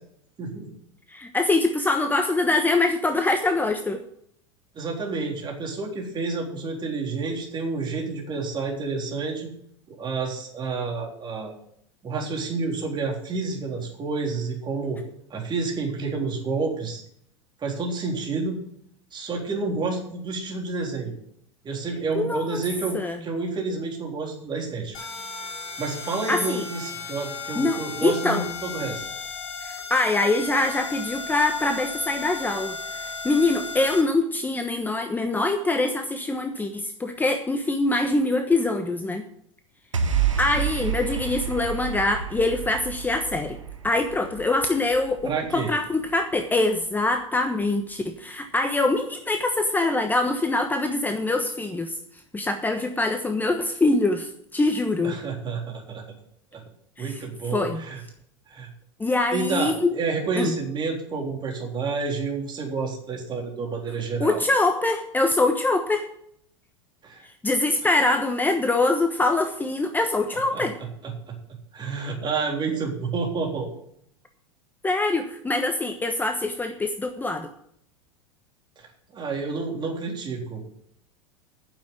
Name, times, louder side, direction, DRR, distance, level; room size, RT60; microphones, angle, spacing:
voice 1, 0.4-0.7 4.8-9.5 9.9-11.5 12.0-15.0 15.3-17.0 17.6-18.6 19.1-21.1 21.6-25.0 25.8-29.0 45.2-45.7 55.0-56.0 56.5-56.6 57.0-58.0 58.5-58.7 59.3-64.4 67.0-67.2 70.5-70.6 71.0-71.4 71.7-73.7 79.1-80.6, right 4 dB, 30° right, 0 dB, 3.7 m, -29 dB
voice 2, 1.1-4.0 22.1-22.6 22.9-23.2 26.3-26.6 27.6-28.5 29.6-39.2 40.4-43.6 43.8-52.0 52.3-55.2 57.0-57.2 57.5-57.8 59.0-59.9 60.4-60.6 64.2-66.1 67.2-70.8 74.8-77.5, left 2 dB, 10° left, 6 dB, 1.1 m, -24 dB
sound 1, 24.9-34.0, left 4 dB, 30° left, 3.0 m, -35 dB
sound 2, 39.9-46.4, right 8 dB, 90° right, 1.2 m, -29 dB
9.5 x 7.3 x 8.2 m, 0.70 s
hypercardioid pair, 90°, 16 cm